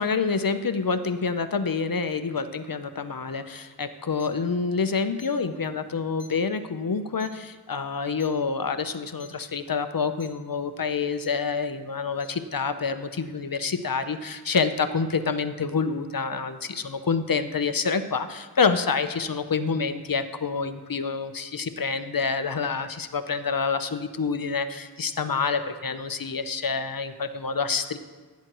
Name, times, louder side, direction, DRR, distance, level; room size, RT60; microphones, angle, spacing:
voice 1, 0.0-28.0, left 5 dB, 55° left, 10 dB, 0.7 m, -27 dB
sound 1, 4.2-4.3 5.2-5.3 6.2-6.3 7.2-7.3 8.2-8.3 9.2-9.3 10.2-10.3 11.2-11.3 12.2-12.3, left 2 dB, 20° left, 1.4 m, -47 dB
16.0 x 9.3 x 3.0 m, 1.5 s
wide cardioid pair, 60°, 41 cm